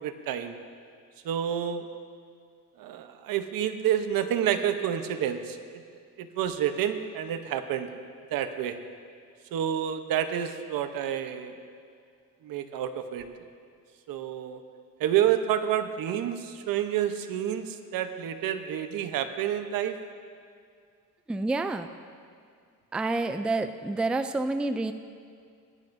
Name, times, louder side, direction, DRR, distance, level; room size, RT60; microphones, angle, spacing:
voice 1, 0.0-0.6 1.2-1.8 2.8-5.6 6.2-8.0 8.3-8.8 9.5-11.5 12.4-13.3 14.1-14.6 15.0-19.9, right 10 dB, 80° right, 8 dB, 0.9 m, -29 dB
voice 2, 21.3-21.9 22.9-24.9, right 2 dB, 5° right, 9 dB, 0.3 m, -28 dB
21.0 x 11.0 x 2.7 m, 2.3 s
cardioid pair, 115°, 34 cm